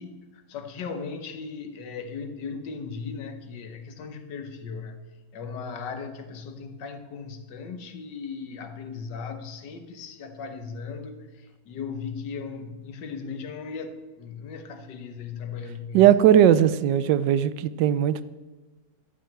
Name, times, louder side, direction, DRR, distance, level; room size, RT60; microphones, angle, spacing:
voice 1, 0.0-5.0 5.3-16.1, left 5 dB, 80° left, 1.7 m, -37 dB
voice 2, 15.9-18.2, right 10 dB, 85° right, 1.2 m, -18 dB
12.5 x 6.2 x 8.5 m
omnidirectional pair, 1.9 m